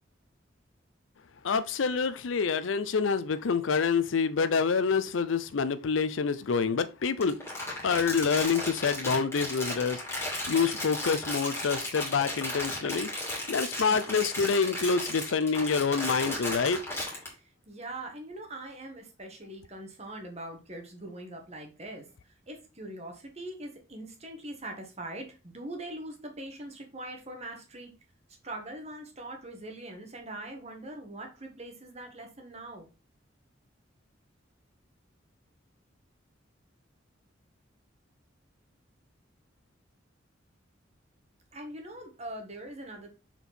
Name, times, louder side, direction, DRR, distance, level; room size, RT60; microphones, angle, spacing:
voice 1, 1.4-7.4 7.8-16.8, left 5 dB, 85° left, 0.5 m, -27 dB
Crumpling crinkling, 7.2-17.3, left 1 dB, 15° left, 2.6 m, -35 dB
voice 2, 17.3-27.9 28.4-32.9 41.5-43.1, right 1 dB, 35° right, 1.6 m, -42 dB
6.7 x 4.6 x 4.2 m
head